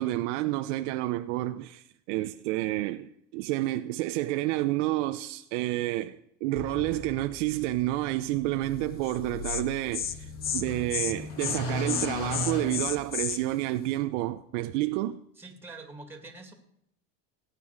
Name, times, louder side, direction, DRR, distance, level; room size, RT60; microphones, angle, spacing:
voice 1, 0.0-15.2, right 16 dB, 75° right, 0.7 m, -30 dB
sound 1, 6.6-13.5, left 3 dB, 75° left, 5.2 m, -38 dB
Insect, 9.1-9.2 9.4-9.6 9.9-10.1 10.4-10.6 10.9-11.1 11.4-11.6 11.9-13.4, left 8 dB, 25° left, 0.8 m, -31 dB
voice 2, 15.4-16.5, right 3 dB, 5° right, 2.2 m, -45 dB
17.0 x 9.2 x 6.4 m
cardioid pair, 150°, 36 cm